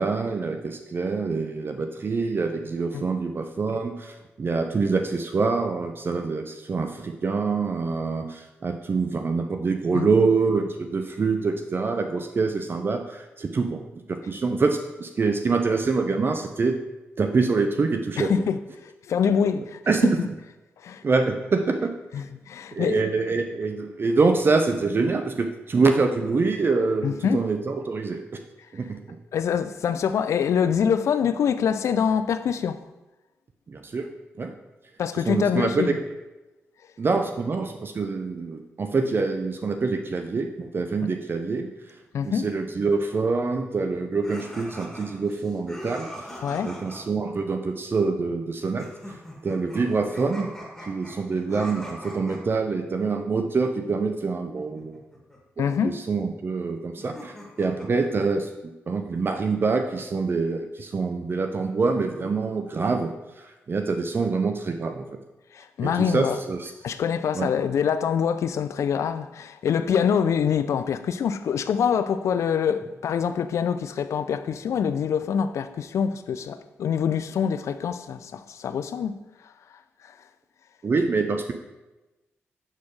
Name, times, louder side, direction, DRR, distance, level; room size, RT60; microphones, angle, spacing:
voice 1, 0.0-13.8 14.1-16.8 17.2-18.3 19.9-20.3 21.0-21.9 22.7-28.2 28.7-29.2 33.7-34.1 34.4-34.5 35.3-35.9 37.0-41.7 42.2-46.1 46.6-48.9 49.4-50.5 50.9-55.0 55.6-65.1 65.8-66.7 67.3-67.5 80.8-81.5, right 4 dB, 45° right, 0.5 m, -25 dB
voice 2, 18.2-18.6 19.1-19.8 20.8-21.0 22.1-23.0 27.0-27.4 29.3-32.8 35.0-36.0 42.1-42.5 46.4-46.7 55.6-55.9 65.5-66.4 66.8-79.1, left 7 dB, 70° left, 0.4 m, -25 dB
sound 1, 44.2-47.0 48.8-52.6 54.6-55.4 57.0-58.2, equal, 5° left, 2.1 m, -41 dB
7.1 x 4.2 x 3.2 m
supercardioid pair, 50°, 5 cm